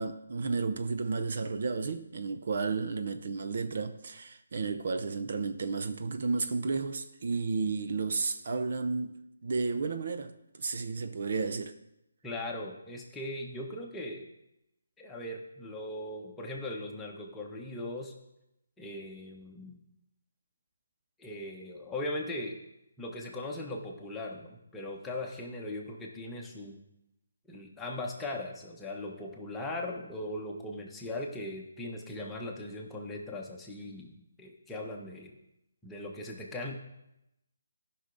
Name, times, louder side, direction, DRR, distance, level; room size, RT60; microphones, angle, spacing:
voice 1, 0.0-9.2 9.4-11.8, right 4 dB, 55° right, 0.7 m, -32 dB
voice 2, 12.2-14.2 15.0-18.1 18.8-19.8 21.2-22.6 23.0-26.8 27.5-35.4 35.8-36.7, left 1 dB, 5° left, 1.1 m, -39 dB
14.5 x 5.8 x 3.9 m
hypercardioid pair, 160°, 0 cm